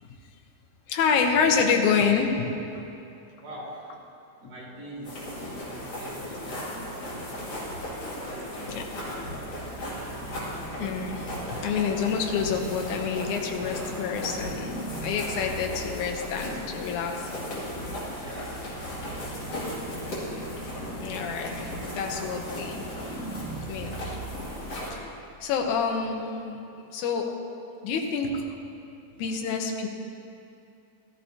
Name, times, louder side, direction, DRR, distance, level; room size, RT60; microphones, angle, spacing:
voice 1, 0.9-2.5 4.4-4.5 8.7-8.8 10.8-17.2 21.0-22.9 23.7-24.2 24.9-25.0 25.4-26.6 26.9-27.3 27.8-28.3 29.2-29.9, left 6 dB, 70° left, 2 dB, 2.2 m, -27 dB
voice 2, 3.4-4.0 4.4-7.3 8.0-9.4 10.0-10.7 17.8-18.8 19.3-19.8 23.4-24.3 26.8-27.0 28.9-29.5, right 1 dB, 50° right, -7 dB, 4.0 m, -46 dB
sound 1, 5.0-24.9, left 1 dB, 50° left, 3.7 m, -36 dB
sound 2, 8.5-25.7, right 3 dB, 10° right, 1.2 m, -42 dB
14.5 x 14.5 x 2.9 m, 2.7 s
omnidirectional pair, 3.9 m